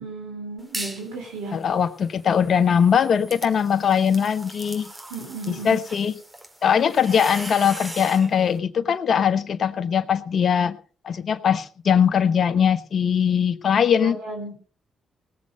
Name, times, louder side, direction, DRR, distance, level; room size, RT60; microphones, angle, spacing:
voice 1, 0.0-1.6 5.1-5.8 14.0-14.5, right 3 dB, 90° right, 1 dB, 3.9 m, -34 dB
sound 1, 0.6-1.1 1.5-8.3, right 1 dB, 20° right, 3.3 m, -39 dB
voice 2, 1.5-4.9 5.5-6.1 6.6-10.8 11.0-14.2, left 7 dB, 60° left, 11 dB, 1.2 m, -21 dB
19.0 x 7.6 x 5.4 m, 0.41 s
supercardioid pair, 50°, 0 cm